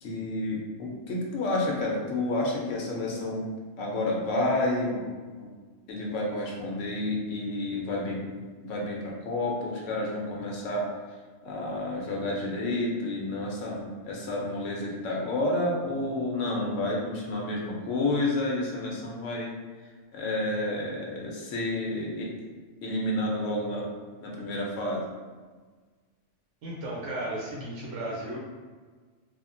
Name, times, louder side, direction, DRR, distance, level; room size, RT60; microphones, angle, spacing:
voice 1, 0.0-3.5 3.8-5.0 5.4-5.5 5.9-10.8 11.4-19.5 20.1-22.3 22.8-23.8 24.2-25.0, left 2 dB, 90° left, -2 dB, 1.0 m, -30 dB
voice 2, 26.6-28.4, right 1 dB, 80° right, -5 dB, 1.0 m, -34 dB
3.5 x 2.1 x 2.5 m, 1.4 s
omnidirectional pair, 1.2 m